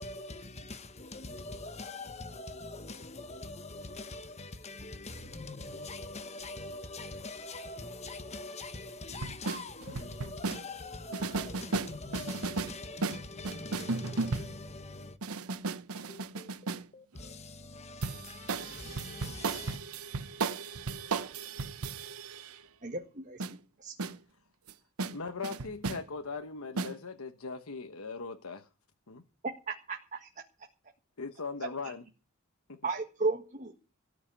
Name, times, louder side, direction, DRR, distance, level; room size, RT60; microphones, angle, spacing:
voice 1, 0.0-15.2 16.1-19.8, left 2 dB, 30° left, 1.3 m, -43 dB
sound 1, 9.1-10.6 11.1-12.8 13.0-14.6 15.2-16.8 18.0-22.6 23.4-23.5 24.0-24.2 24.7-24.8 25.0-25.2 25.4-26.0 26.8-26.9, right 3 dB, 80° right, 0.9 m, -35 dB
voice 2, 22.8-23.5 23.8-23.9 29.7-30.3 32.8-33.7, right 3 dB, 35° right, 1.7 m, -34 dB
voice 3, 25.1-28.7 29.1-29.2 31.2-32.1 32.7-32.9, left 4 dB, 75° left, 1.1 m, -39 dB
18.0 x 6.3 x 9.2 m
head